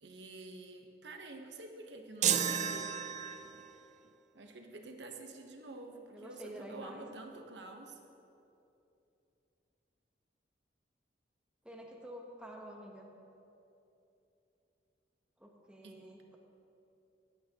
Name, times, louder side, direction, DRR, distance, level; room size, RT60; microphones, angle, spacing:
voice 1, 0.0-3.1 4.3-8.0 15.8-16.0, right 2 dB, 75° right, 4 dB, 1.0 m, -48 dB
sound 1, 2.2-3.7, right 9 dB, 40° right, 0.3 m, -32 dB
voice 2, 6.1-7.1 11.6-13.1 15.4-16.4, right 1 dB, 5° right, -1 dB, 1.0 m, -49 dB
18.5 x 8.3 x 2.9 m, 2.8 s
head